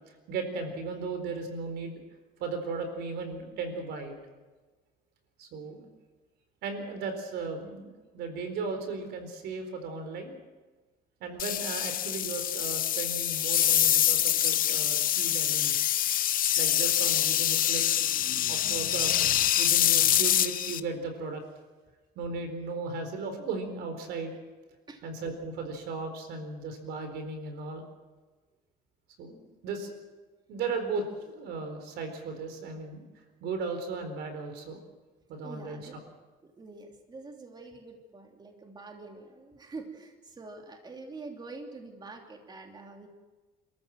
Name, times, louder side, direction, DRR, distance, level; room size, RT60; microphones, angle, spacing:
voice 1, 0.0-2.0 2.4-4.2 5.4-5.9 6.6-10.4 11.2-15.8 16.5-17.8 18.5-21.4 22.2-24.4 25.0-27.8 29.2-29.9 30.5-33.0 33.4-34.8 35.3-35.8, right 4 dB, 80° right, 7 dB, 4.3 m, -36 dB
sound 1, 11.4-20.8, left 11 dB, 55° left, 0.8 m, -25 dB
voice 2, 35.4-36.1 36.4-43.1, right 3 dB, 25° right, 2 dB, 3.0 m, -45 dB
28.5 x 14.0 x 7.6 m, 1.3 s
cardioid pair, 110°, 17 cm